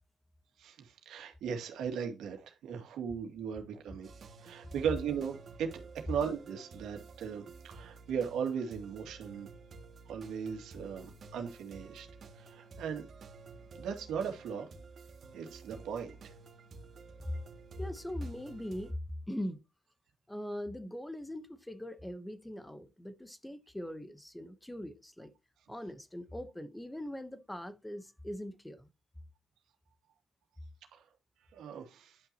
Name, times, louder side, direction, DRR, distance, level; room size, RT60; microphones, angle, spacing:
voice 1, 0.6-4.1 4.4-9.5 10.1-12.1 12.4-13.1 13.7-14.7 15.3-16.3 30.9-31.0 31.5-32.2, right 7 dB, 85° right, 2.3 m, -37 dB
sound 1, 4.0-18.9, right 4 dB, 55° right, 2.2 m, -52 dB
voice 2, 17.8-19.0 19.3-19.6 20.3-25.3 25.7-28.9, left 1 dB, 10° left, 1.0 m, -41 dB
11.0 x 5.8 x 2.9 m
cardioid pair, 90°, 0 cm